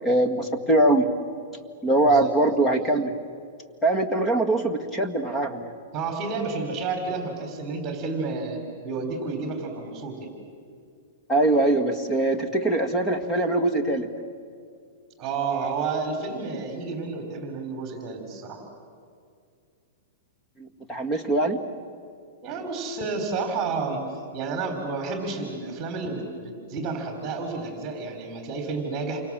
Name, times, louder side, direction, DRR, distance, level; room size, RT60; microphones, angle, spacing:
voice 1, 0.0-1.1 1.8-3.1 3.8-5.7 11.3-14.1 20.6-21.6, right 2 dB, 10° left, 8 dB, 1.8 m, -22 dB
voice 2, 2.0-2.3 5.9-10.3 15.2-18.6 22.4-24.0 24.3-29.2, right 4 dB, 25° right, 4 dB, 3.7 m, -30 dB
28.5 x 24.5 x 7.4 m, 2.3 s
hypercardioid pair, 155°, 0 cm